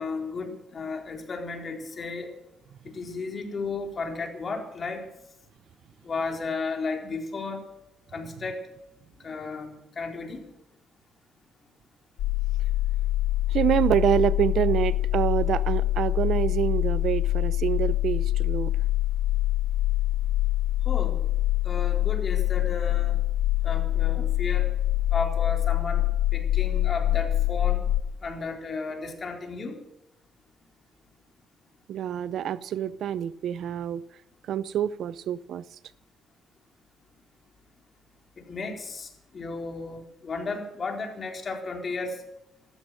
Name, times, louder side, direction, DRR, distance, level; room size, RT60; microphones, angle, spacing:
voice 1, 0.0-2.3 2.8-5.0 6.0-7.6 8.1-8.7 9.2-10.4 20.9-21.2 21.6-23.2 23.6-24.7 25.1-26.0 26.3-27.8 28.2-29.8 38.4-42.2, left 4 dB, 40° left, 4.2 m, -34 dB
sound 1, 12.2-28.0, left 14 dB, 90° left, 0.9 m, -25 dB
voice 2, 13.5-18.7 31.9-34.0 34.5-35.6, right 10 dB, 70° right, 0.6 m, -26 dB
15.0 x 14.0 x 6.5 m
cardioid pair, 90°, 0 cm